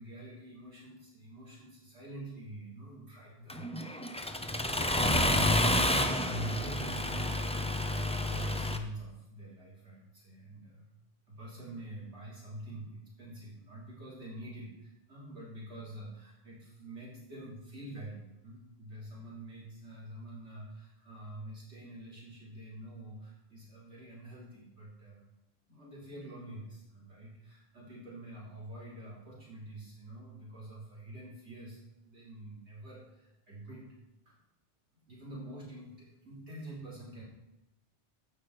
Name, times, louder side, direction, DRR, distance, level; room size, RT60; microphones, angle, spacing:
voice 1, 0.0-4.2 4.9-5.3 6.2-10.9 11.3-25.3 25.7-33.9 34.3-34.4 35.1-37.2, right 1 dB, 85° right, -6 dB, 3.9 m, -46 dB
Accelerating revving vroom, 3.5-8.8, left 1 dB, 10° left, 0.5 m, -29 dB
16.0 x 6.1 x 5.0 m, 0.93 s
omnidirectional pair, 1.1 m